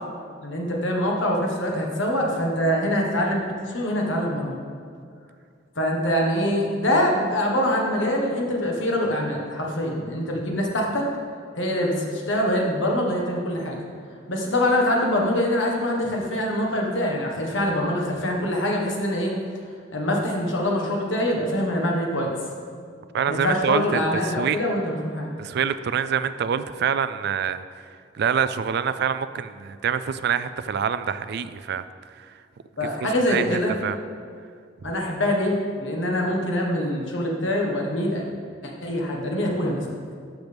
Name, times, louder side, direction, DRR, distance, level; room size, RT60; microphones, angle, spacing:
voice 1, 0.4-4.6 5.7-11.1 11.5-13.8 14.3-19.3 19.9-22.3 23.3-25.3 32.8-33.7 34.8-38.3 38.6-39.9, left 1 dB, 80° left, -1 dB, 1.5 m, -24 dB
voice 2, 23.1-24.6 25.4-27.6 28.1-31.8 32.2-32.3 32.8-32.9 33.3-34.0 34.8-34.9, right 7 dB, 60° right, 12 dB, 0.4 m, -26 dB
12.0 x 6.5 x 3.5 m, 2.2 s
head